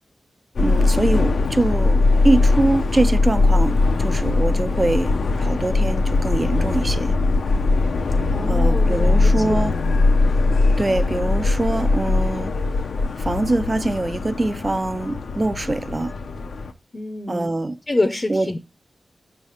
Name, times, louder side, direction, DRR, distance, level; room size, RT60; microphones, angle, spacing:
Subway metro underground, 0.6-16.7, left 3 dB, 85° left, 0.6 m, -20 dB
voice 1, 0.6-7.1 8.5-9.8 10.8-12.5 13.2-16.1 17.3-17.8 18.3-18.6, right 2 dB, 30° right, 0.3 m, -23 dB
voice 2, 8.3-9.6 16.9-17.5 17.9-18.6, left 2 dB, 30° left, 0.6 m, -26 dB
6.3 x 3.3 x 5.5 m
wide cardioid pair, 105°, 0 cm